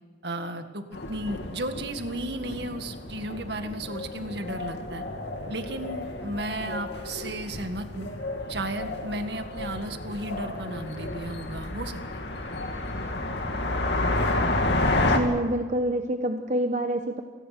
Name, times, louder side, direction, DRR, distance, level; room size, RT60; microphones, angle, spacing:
voice 1, 0.2-5.0 5.5-8.1 8.5-12.2, right 1 dB, 60° right, 7 dB, 2.0 m, -34 dB
sound 1, 0.9-15.2, left 2 dB, 65° left, 2.6 m, -31 dB
voice 2, 15.1-17.2, right 1 dB, 40° right, 5 dB, 1.1 m, -27 dB
28.0 x 19.5 x 6.0 m, 1.4 s
head